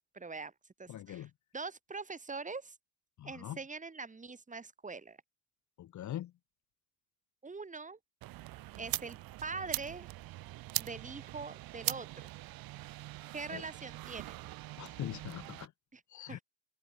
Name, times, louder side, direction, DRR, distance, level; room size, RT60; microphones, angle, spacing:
voice 1, 0.1-0.5 0.8-2.8 3.2-5.2 7.4-8.0 8.8-10.1 10.8-12.3 13.3-14.5 15.9-16.0 16.3-16.4, right 4 dB, 15° right, 7.3 m, -43 dB
voice 2, 0.9-1.3 3.2-3.6 5.8-6.3 13.5-13.6 14.8-15.7 16.1-16.4, left 12 dB, 40° left, 2.1 m, -42 dB
sound 1, 8.2-15.7, right 17 dB, 55° right, 2.7 m, -41 dB
open air
supercardioid pair, 100°, 43 cm